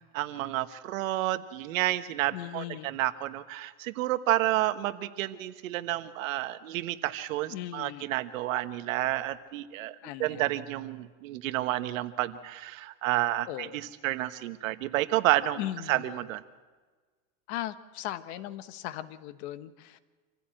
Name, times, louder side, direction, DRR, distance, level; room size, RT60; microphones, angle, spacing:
voice 1, 0.1-15.6 15.9-16.4, right 15 dB, 70° right, 11 dB, 1.3 m, -30 dB
voice 2, 2.3-3.0 7.5-8.1 10.0-10.4 13.4-13.8 15.6-16.2 17.5-20.0, left 13 dB, 50° left, 12 dB, 1.2 m, -38 dB
27.0 x 15.5 x 7.8 m, 1.4 s
supercardioid pair, 155°, 42 cm